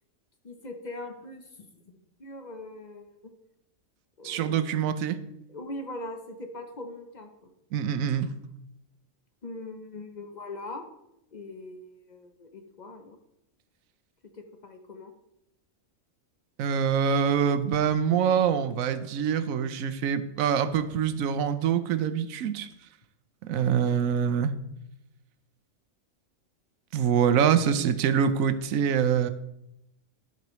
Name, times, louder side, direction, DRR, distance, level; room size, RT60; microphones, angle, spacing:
voice 1, 0.4-1.8 2.2-3.3 4.2-4.9 5.5-7.5 9.4-10.8 11.3-13.2 14.3-15.1, left 2 dB, 40° left, 5 dB, 0.7 m, -41 dB
voice 2, 4.2-5.2 7.7-8.3 16.6-22.7 23.4-24.5 26.9-29.3, right 7 dB, 90° right, 12 dB, 1.0 m, -25 dB
12.0 x 5.7 x 3.1 m, 0.85 s
omnidirectional pair, 1.4 m